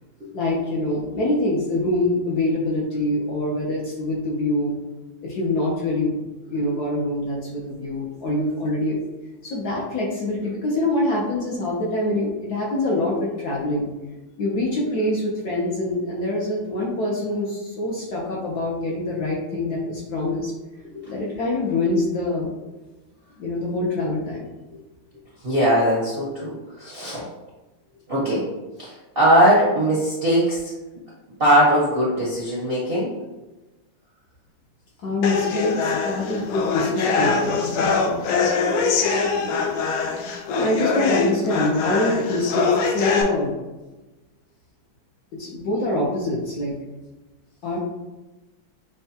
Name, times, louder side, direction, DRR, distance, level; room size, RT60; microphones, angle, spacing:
voice 1, 0.3-4.7 5.2-9.0 9.4-13.9 14.4-20.5 21.1-22.5 23.4-24.5 35.0-38.2 40.5-43.6 45.3-46.8 47.6-47.8, left 1 dB, 65° left, -4 dB, 1.0 m, -25 dB
voice 2, 25.4-27.2 28.1-28.5 28.8-30.7 31.4-33.1, right 1 dB, 50° right, -7 dB, 0.6 m, -20 dB
sound 1, 35.2-43.2, left 5 dB, 85° left, 1.4 m, -23 dB
6.6 x 2.3 x 2.7 m, 1.1 s
omnidirectional pair, 2.3 m